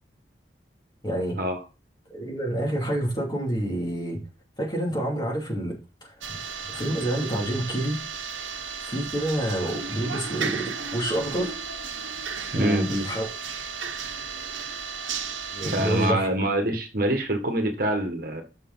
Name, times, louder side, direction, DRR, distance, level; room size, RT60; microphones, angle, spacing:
voice 1, 1.0-1.4 2.1-4.2 4.6-6.1 6.7-8.0 8.8-11.5 12.5-13.3 15.5-16.3, right 1 dB, 20° left, 2.6 m, -28 dB
sound 1, 6.2-16.1, right 6 dB, 85° right, 1.1 m, -34 dB
voice 2, 12.5-12.9 15.7-18.4, right 1 dB, 50° right, 1.5 m, -25 dB
6.7 x 6.4 x 3.9 m
head